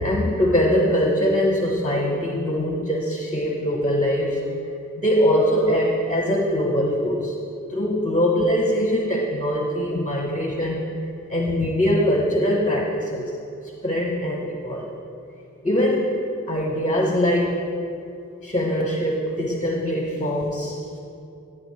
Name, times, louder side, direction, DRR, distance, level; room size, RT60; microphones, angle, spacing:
voice 1, 0.0-4.4 5.0-7.4 7.7-10.9 11.3-13.4 13.8-14.9 15.6-16.2 16.5-17.6 18.4-20.8, equal, 25° left, 0 dB, 1.0 m, -22 dB
17.5 x 8.7 x 3.3 m, 2.6 s
wide cardioid pair, 90°, 31 cm